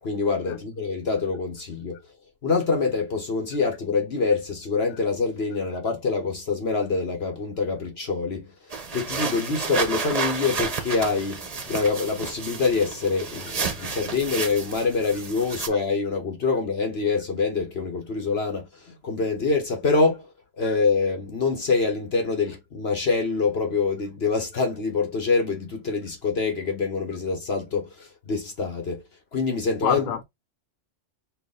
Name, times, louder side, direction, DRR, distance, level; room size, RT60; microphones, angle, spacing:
voice 1, 0.0-2.0 2.4-20.3 20.6-29.0 29.3-30.1, left 4 dB, 55° left, 1.3 m, -25 dB
sound 1, 8.7-15.7, right 4 dB, 35° right, 0.7 m, -31 dB
voice 2, 29.8-30.2, left 8 dB, 80° left, 1.0 m, -27 dB
4.6 x 2.5 x 3.8 m
omnidirectional pair, 1.4 m